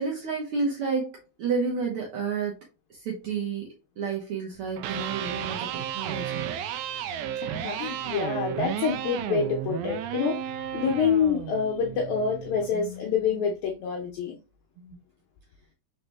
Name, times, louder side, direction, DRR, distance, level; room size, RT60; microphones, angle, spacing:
voice 1, 0.0-2.6 2.9-6.6 12.7-13.4 14.8-15.0, right 5 dB, 65° right, 1.4 m, -31 dB
Electric guitar, 4.7-12.8, right 10 dB, 80° right, 1.9 m, -33 dB
voice 2, 7.4-10.4 10.7-14.4, left 6 dB, 75° left, 2.0 m, -27 dB
5.0 x 4.1 x 2.2 m
omnidirectional pair, 3.6 m